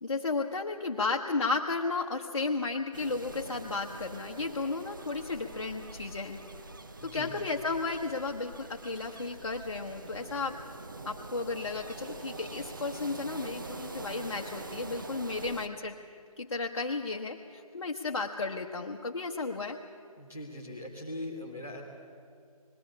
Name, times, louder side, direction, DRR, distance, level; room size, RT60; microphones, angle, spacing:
voice 1, 0.0-6.4 7.0-10.6 11.0-16.0 16.4-19.8, left 3 dB, 50° left, 1 dB, 1.0 m, -33 dB
sound 1, 2.9-15.7, right 2 dB, 35° right, 0.8 m, -44 dB
voice 2, 7.0-7.3 20.2-21.8, left 1 dB, 5° right, -6 dB, 0.5 m, -40 dB
20.5 x 15.5 x 8.5 m, 2.3 s
figure-of-eight pair, 165°, 19 cm